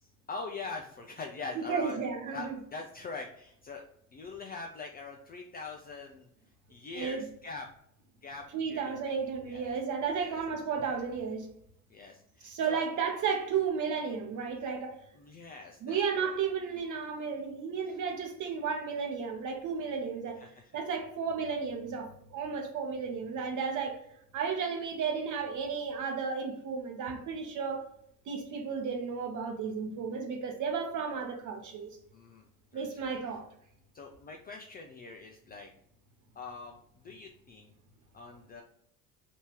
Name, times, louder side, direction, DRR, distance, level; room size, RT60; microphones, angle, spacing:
voice 1, 0.0-2.0 2.3-3.8 4.1-6.3 6.7-7.7 8.2-8.9 9.5-9.7 10.1-10.4 11.9-12.8 15.2-16.3 17.8-17.9 20.4-20.6 32.1-32.5 32.7-33.1 33.9-35.7 36.4-36.7 37.0-37.7 38.1-38.6, left 3 dB, 20° left, 0.4 m, -43 dB
voice 2, 1.5-2.5 6.9-7.2 8.5-11.5 12.4-15.0 15.8-20.4 20.7-24.0 24.3-27.8 28.3-31.9 32.7-33.5, right 6 dB, 40° right, 1.0 m, -33 dB
3.5 x 2.8 x 4.4 m
figure-of-eight pair, 65°, 46 cm